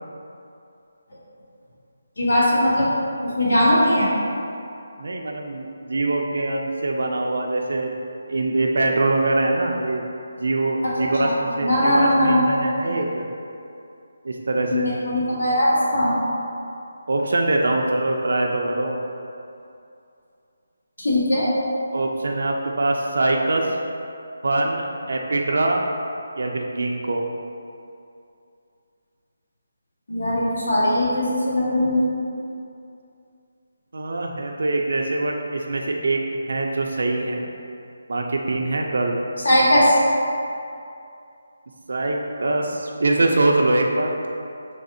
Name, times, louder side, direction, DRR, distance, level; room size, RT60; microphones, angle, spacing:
voice 1, 2.2-2.9 3.2-4.1 10.8-10.9 11.2-11.3 11.6-12.4 14.7-16.1 21.0-21.5 30.1-32.1 39.4-40.0, left 1 dB, 80° left, -7 dB, 1.3 m, -19 dB
voice 2, 5.0-7.9 8.3-10.0 10.4-13.2 14.2-15.0 17.1-19.0 21.9-23.8 24.4-25.8 26.4-27.2 33.9-37.5 38.1-39.2 41.9-44.1, right 2 dB, 70° right, 0 dB, 0.4 m, -23 dB
5.0 x 3.3 x 2.6 m, 2.6 s
figure-of-eight pair, 165°, 0 cm